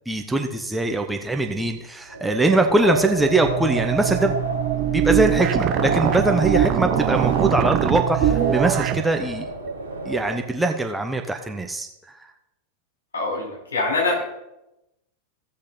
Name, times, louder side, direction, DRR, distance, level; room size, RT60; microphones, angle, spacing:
voice 1, 0.1-4.3 4.9-9.4 10.1-11.9 12.2-12.3, right 2 dB, 5° right, 4 dB, 0.9 m, -22 dB
Wind, 2.1-10.5, right 2 dB, 80° right, 1.3 m, -29 dB
sound 1, 3.3-9.0, right 11 dB, 35° right, 0.7 m, -23 dB
voice 2, 13.1-14.2, left 3 dB, 70° left, -1 dB, 4.3 m, -24 dB
16.0 x 6.5 x 3.8 m, 0.89 s
figure-of-eight pair, 90°, 0 cm